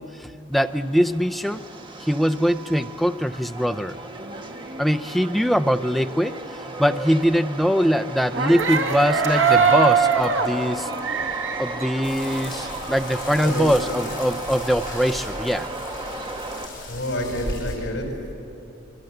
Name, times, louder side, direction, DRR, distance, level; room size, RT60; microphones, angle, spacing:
voice 1, 0.0-1.6 2.0-4.0 4.8-6.4 6.8-10.9 11.6-15.7, equal, ahead, 10 dB, 0.5 m, -22 dB
Subway metro underground, 0.5-16.7, right 2 dB, 25° right, 1.6 m, -35 dB
sound 1, 8.3-12.9 13.3-14.3, right 5 dB, 75° right, 1.9 m, -23 dB
sound 2, 12.0-17.8, left 2 dB, 45° left, 6.6 m, -36 dB
voice 2, 13.4-13.9 16.9-18.1, equal, 65° left, 2 dB, 5.4 m, -28 dB
26.5 x 23.5 x 7.9 m, 2.9 s
head